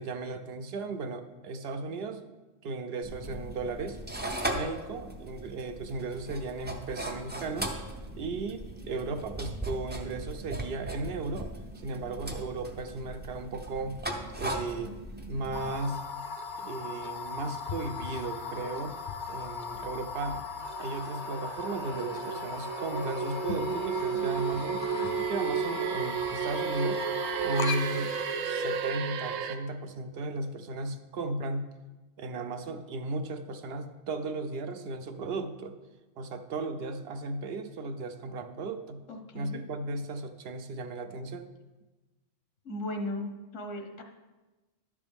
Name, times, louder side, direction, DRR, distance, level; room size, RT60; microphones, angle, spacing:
voice 1, 0.0-2.3 2.6-4.0 4.5-7.7 8.2-11.5 11.8-14.0 14.4-14.9 15.3-16.0 16.6-19.0 19.3-20.5 20.8-24.8 25.3-27.0 27.4-28.2 28.4-31.7 32.2-35.8 36.2-39.0 39.3-41.5, right 3 dB, 60° right, 9 dB, 0.7 m, -35 dB
sound 1, 3.0-15.7, right 1 dB, 15° right, 0.4 m, -38 dB
sound 2, 15.5-28.9, left 5 dB, 55° left, 0.6 m, -38 dB
sound 3, 20.6-29.6, right 7 dB, 85° right, 1.0 m, -33 dB
voice 2, 39.1-39.6 42.6-44.0, left 1 dB, 80° left, 4 dB, 1.3 m, -36 dB
11.5 x 6.7 x 3.5 m, 1.1 s
omnidirectional pair, 1.3 m